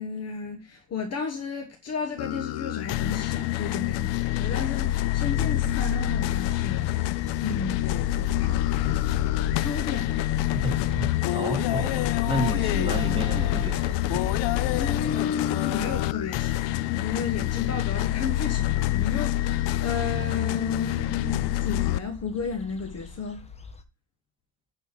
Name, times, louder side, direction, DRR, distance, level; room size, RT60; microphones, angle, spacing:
voice 1, 0.0-6.9 7.4-8.9 9.6-10.3 14.7-23.4, left 5 dB, 35° left, 1.3 m, -33 dB
sound 1, 2.2-22.0, left 15 dB, 70° left, 0.6 m, -26 dB
sound 2, 4.1-23.8, left 5 dB, 15° left, 0.8 m, -40 dB
voice 2, 10.5-14.0, right 1 dB, 10° right, 3.0 m, -31 dB
9.6 x 4.2 x 7.3 m
cardioid pair, 150°, 46 cm